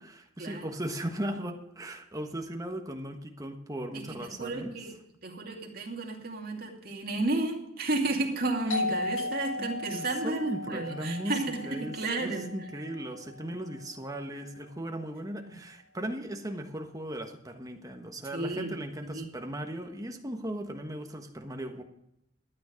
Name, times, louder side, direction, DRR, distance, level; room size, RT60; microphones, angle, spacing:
voice 1, 0.0-4.8 9.6-21.8, right 1 dB, 20° right, 4 dB, 1.3 m, -37 dB
voice 2, 3.9-4.9 5.2-12.5 18.3-18.7 19.0-19.3, right 2 dB, 50° right, 0 dB, 2.6 m, -32 dB
Doorbell, 8.7-14.1, left 2 dB, 85° left, 1.5 m, -37 dB
13.0 x 9.3 x 5.1 m, 0.80 s
head